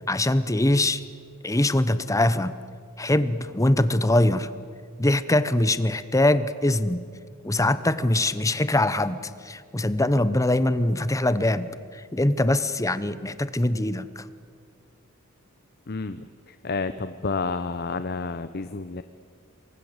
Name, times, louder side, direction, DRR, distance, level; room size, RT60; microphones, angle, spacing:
voice 1, 0.1-1.0 1.4-2.5 3.0-4.5 5.0-7.0 7.4-14.2, left 1 dB, 15° left, 13 dB, 0.9 m, -23 dB
voice 2, 15.9-19.0, left 4 dB, 50° left, 11 dB, 0.8 m, -30 dB
28.5 x 23.5 x 8.0 m, 2.1 s
head